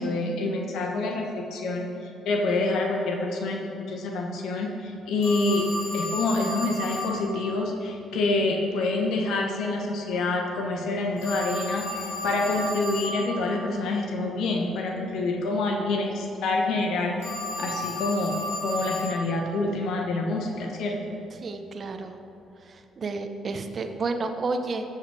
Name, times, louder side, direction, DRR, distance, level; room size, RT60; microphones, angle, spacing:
voice 1, 0.0-5.7 5.9-17.2 17.6-21.0, left 2 dB, 65° left, 2 dB, 1.0 m, -27 dB
Telephone, 5.2-7.2 11.2-13.2 17.2-19.2, left 1 dB, 85° left, 2.1 m, -33 dB
voice 2, 21.4-22.2 22.6-24.8, right 3 dB, 45° right, 7 dB, 0.8 m, -31 dB
13.5 x 5.7 x 4.8 m, 2.8 s
hypercardioid pair, 50°, 0 cm